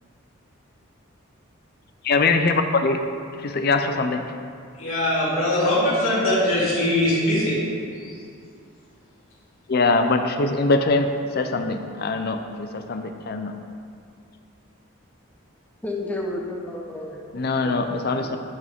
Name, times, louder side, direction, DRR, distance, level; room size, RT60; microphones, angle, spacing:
voice 1, 2.0-3.0 3.4-4.2 9.7-11.1 11.3-13.5 17.3-18.4, left 3 dB, 45° left, 6 dB, 0.5 m, -22 dB
voice 2, 4.7-7.6 7.9-8.2, left 1 dB, 75° left, -8 dB, 2.3 m, -22 dB
voice 3, 15.8-17.8 18.2-18.3, left 2 dB, 10° left, -1 dB, 0.9 m, -32 dB
12.0 x 6.1 x 3.6 m, 2.3 s
head